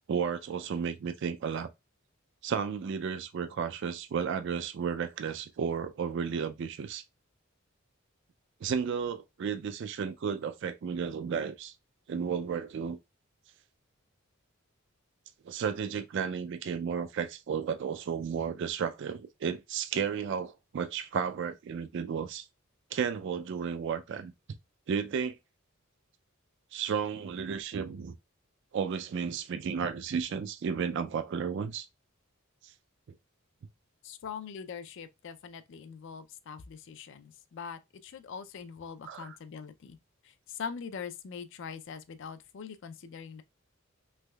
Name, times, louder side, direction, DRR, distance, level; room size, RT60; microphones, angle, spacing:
voice 1, 0.1-1.7 2.4-7.0 8.6-11.7 12.1-13.0 15.5-22.4 22.9-24.3 24.9-25.4 26.7-28.1 28.7-31.9 39.1-39.3, right 6 dB, 60° right, 0.3 m, -33 dB
voice 2, 34.0-40.0 40.2-43.4, left 6 dB, 60° left, 0.4 m, -42 dB
3.3 x 3.0 x 2.2 m
head